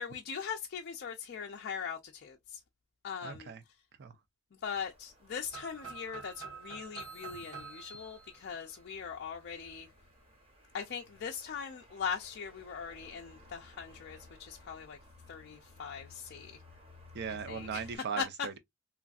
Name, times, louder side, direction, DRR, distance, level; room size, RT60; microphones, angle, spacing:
voice 1, 0.0-2.4 3.0-3.5 4.6-9.9 10.7-15.0 15.3-16.6 17.5-17.8 18.2-18.3, left 6 dB, 50° left, 0.4 m, -40 dB
voice 2, 3.2-3.6 4.0-4.2 7.3-7.5 17.1-18.6, right 6 dB, 50° right, 0.4 m, -39 dB
sound 1, 4.7-18.0, left 2 dB, 25° right, 1.1 m, -58 dB
sound 2, 5.5-9.3, right 5 dB, 85° right, 1.2 m, -48 dB
sound 3, 7.0-8.9, left 2 dB, 5° left, 0.8 m, -54 dB
3.1 x 2.5 x 2.3 m
head